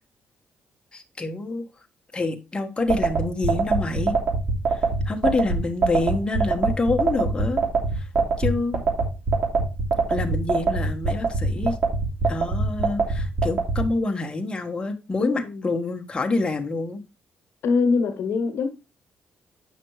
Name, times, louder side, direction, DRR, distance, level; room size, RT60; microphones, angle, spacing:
voice 1, 0.9-1.7 2.1-4.1 4.7-7.6 7.9-8.1 8.4-8.8 10.1-11.8 12.3-17.0, left 3 dB, 20° left, 1.2 m, -27 dB
sound 1, 2.9-13.8, right 4 dB, 50° right, 3.0 m, -22 dB
voice 2, 15.2-15.7 17.6-18.7, left 4 dB, 70° left, 1.2 m, -23 dB
9.2 x 5.9 x 3.1 m
cardioid pair, 100°, 4 cm